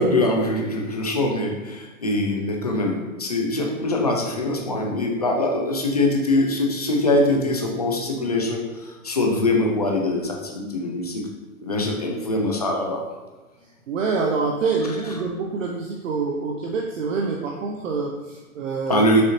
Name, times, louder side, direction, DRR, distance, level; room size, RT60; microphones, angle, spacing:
voice 1, 0.0-11.2 11.6-13.0 18.9-19.2, left 1 dB, 30° left, 0 dB, 0.4 m, -23 dB
voice 2, 13.9-19.0, right 4 dB, 60° right, 0 dB, 0.7 m, -26 dB
6.4 x 2.6 x 2.9 m, 1.2 s
hypercardioid pair, 160°, 44 cm